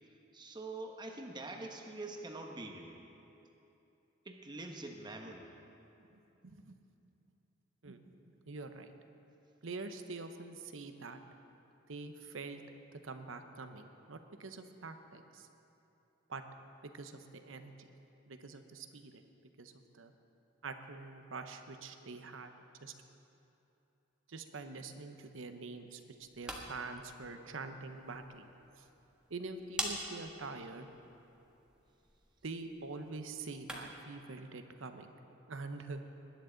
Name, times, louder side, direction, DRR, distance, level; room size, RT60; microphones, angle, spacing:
voice 1, 0.0-3.0 4.2-5.5, right 2 dB, 20° right, 3 dB, 1.0 m, -45 dB
voice 2, 6.4-6.8 7.8-8.0 8.5-8.9 9.6-11.2 11.9-12.6 13.0-15.5 16.3-16.4 16.8-17.7 18.3-19.2 19.6-20.1 20.6-22.5 22.8-22.9 24.3-28.5 29.3-30.9 32.4-35.1 35.5-36.0, right 3 dB, 85° right, 7 dB, 0.8 m, -45 dB
sound 1, 26.1-34.1, right 1 dB, 5° right, 1.2 m, -47 dB
20.0 x 10.5 x 3.9 m, 2.9 s
head